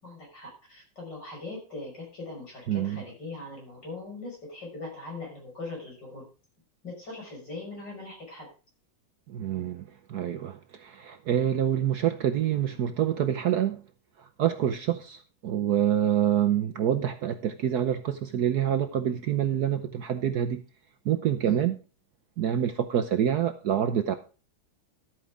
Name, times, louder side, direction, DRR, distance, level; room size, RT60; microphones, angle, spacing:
voice 1, 0.0-6.3 6.8-8.5 21.4-21.6, left 2 dB, 60° left, 6.5 m, -40 dB
voice 2, 2.7-3.0 9.3-13.8 14.2-20.6 21.0-21.8 22.4-24.1, right 10 dB, 60° right, 1.1 m, -27 dB
12.5 x 8.9 x 3.6 m
omnidirectional pair, 2.2 m